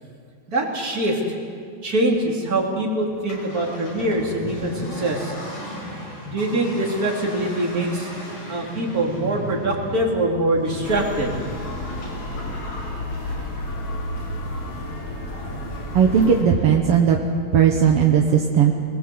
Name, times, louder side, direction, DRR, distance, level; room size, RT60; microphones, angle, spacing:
voice 1, 0.5-1.2 1.8-5.3 6.2-8.1 8.5-11.3, right 1 dB, 25° right, -1 dB, 3.3 m, -23 dB
Accelerating revving vroom, 3.1-16.7, left 1 dB, 80° left, 7.2 m, -37 dB
sound 1, 10.8-16.4, left 1 dB, 40° left, 4.3 m, -31 dB
voice 2, 15.9-17.2 17.5-18.7, right 7 dB, 60° right, 2 dB, 1.6 m, -17 dB
26.5 x 20.5 x 7.9 m, 2.3 s
omnidirectional pair, 4.1 m